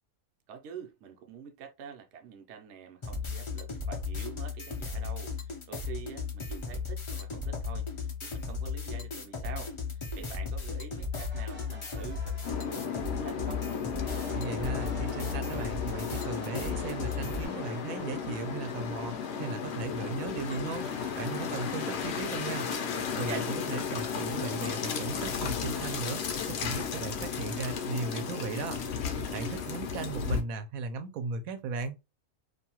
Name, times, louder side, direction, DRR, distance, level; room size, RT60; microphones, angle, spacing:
voice 1, 0.5-13.6 23.2-23.5 29.3-29.7, right 7 dB, 65° right, 0.8 m, -46 dB
sound 1, 3.0-17.4, left 5 dB, 45° left, 0.4 m, -36 dB
sound 2, 11.1-13.3 13.9-20.1 20.7-23.3, equal, 15° right, 0.5 m, -49 dB
sound 3, 12.4-30.4, left 6 dB, 65° left, 0.7 m, -34 dB
voice 2, 14.3-22.7 23.2-28.8 29.3-32.0, right 4 dB, 90° right, 1.0 m, -37 dB
2.6 x 2.3 x 2.8 m
omnidirectional pair, 1.4 m